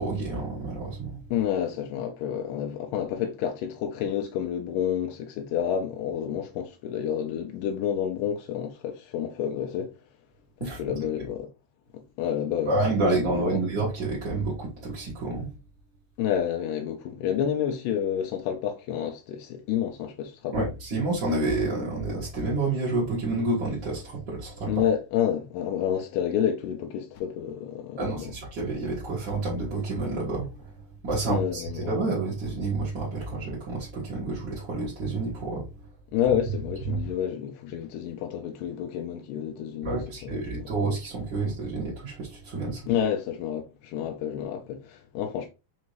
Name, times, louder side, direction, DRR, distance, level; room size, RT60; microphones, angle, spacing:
voice 1, 0.0-1.2 10.6-10.8 12.6-15.5 20.5-24.8 28.0-30.5 31.0-35.7 36.9-37.0 39.8-42.9, right 2 dB, 60° right, 1.2 m, -29 dB
voice 2, 1.3-9.9 10.6-11.5 11.9-12.8 13.3-13.6 16.2-20.7 24.7-28.3 31.3-31.9 36.1-40.7 42.6-45.5, left 9 dB, 80° left, 2.0 m, -29 dB
5.7 x 2.7 x 3.0 m
omnidirectional pair, 4.4 m